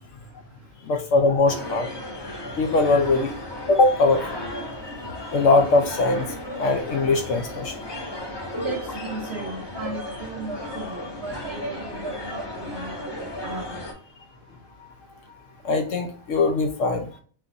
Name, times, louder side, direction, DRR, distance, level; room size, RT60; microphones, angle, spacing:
voice 1, 0.8-1.9 2.6-3.3 3.7-4.4 5.3-7.8 15.6-17.1, left 3 dB, 65° left, 5 dB, 0.8 m, -21 dB
sound 1, 1.5-13.9, left 1 dB, 20° left, 0.7 m, -34 dB
voice 2, 8.6-13.9, right 4 dB, 70° right, 4 dB, 0.6 m, -36 dB
4.4 x 2.5 x 3.9 m, 0.44 s
omnidirectional pair, 1.6 m